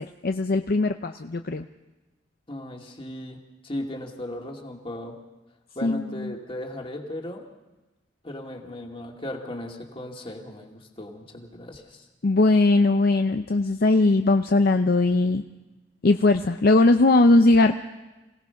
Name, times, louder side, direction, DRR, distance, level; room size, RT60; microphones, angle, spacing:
voice 1, 0.0-1.6 5.8-6.3 12.2-15.4 16.0-17.7, left 2 dB, 55° left, 7 dB, 0.6 m, -20 dB
voice 2, 2.5-5.2 5.7-7.4 8.2-12.1, left 1 dB, 30° left, 1 dB, 2.4 m, -37 dB
27.0 x 17.5 x 5.8 m, 1.1 s
head